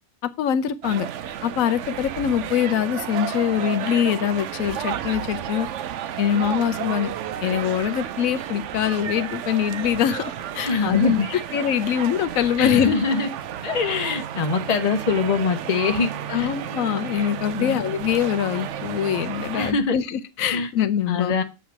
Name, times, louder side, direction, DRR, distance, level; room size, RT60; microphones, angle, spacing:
voice 1, 0.2-1.1 1.4-5.7 6.2-7.1 7.4-12.9 16.3-21.3, left 9 dB, 80° left, 1.0 m, -23 dB
sound 1, 0.8-19.7, right 10 dB, 70° right, 0.8 m, -32 dB
voice 2, 10.7-11.4 12.6-13.3 13.6-16.5 17.5-17.8 19.5-19.9 20.5-20.7 21.1-21.4, left 4 dB, 35° left, 0.8 m, -23 dB
8.1 x 3.2 x 5.8 m
omnidirectional pair, 1.4 m